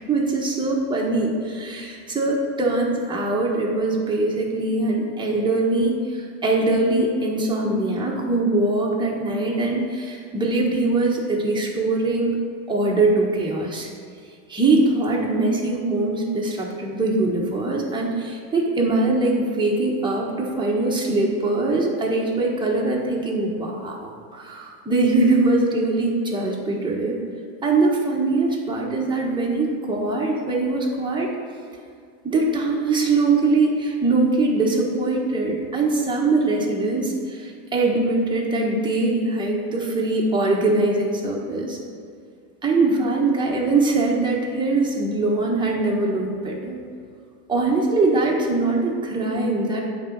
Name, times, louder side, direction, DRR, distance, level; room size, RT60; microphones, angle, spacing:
voice 1, 0.1-12.4 12.7-13.9 14.5-27.2 27.6-31.3 32.2-41.8 42.6-46.8 47.5-49.8, right 2 dB, 10° right, -3 dB, 1.4 m, -22 dB
8.9 x 4.0 x 6.0 m, 2.3 s
supercardioid pair, 130°, 44 cm